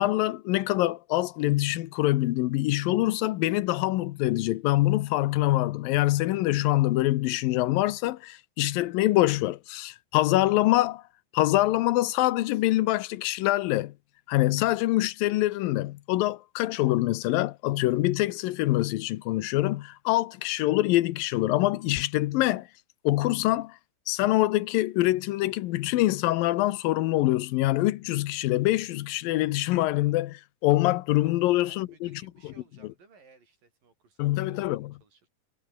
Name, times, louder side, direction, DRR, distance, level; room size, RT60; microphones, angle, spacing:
voice 1, 0.0-11.0 11.3-13.9 14.3-22.7 23.0-23.8 24.1-32.2 34.2-34.9, left 17 dB, 80° left, 2.5 m, -25 dB
voice 2, 31.2-35.3, right 4 dB, 65° right, 7.6 m, -58 dB
omnidirectional pair, 4.2 m